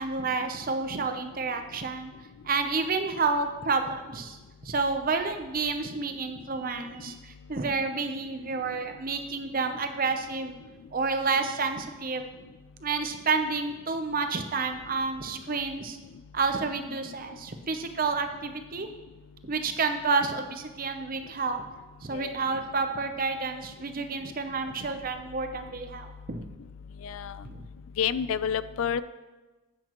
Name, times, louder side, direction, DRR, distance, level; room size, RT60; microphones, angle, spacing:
voice 1, 0.0-2.1 2.4-4.4 4.6-10.5 10.9-12.3 12.8-16.0 16.3-18.9 19.4-21.6 22.0-26.5 27.4-27.7, right 4 dB, 40° right, 7 dB, 0.6 m, -30 dB
voice 2, 27.0-27.4 28.0-29.0, left 8 dB, 70° left, 15 dB, 0.3 m, -29 dB
10.0 x 8.2 x 3.0 m, 1.2 s
head